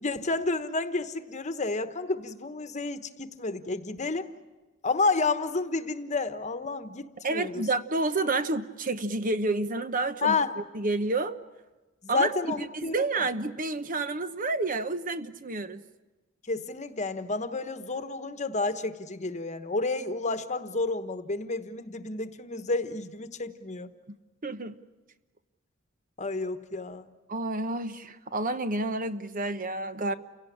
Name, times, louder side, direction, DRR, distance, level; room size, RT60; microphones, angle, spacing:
voice 1, 0.0-4.3 4.8-7.6 10.2-10.5 12.0-13.3 16.5-23.9 26.2-27.0, left 3 dB, 35° left, 10 dB, 1.2 m, -30 dB
voice 2, 7.2-10.4 10.7-11.4 12.1-12.3 12.6-15.8 24.1-24.2 24.4-24.8 27.3-30.1, right 2 dB, 45° right, 10 dB, 1.0 m, -29 dB
29.5 x 17.5 x 10.0 m, 1.2 s
head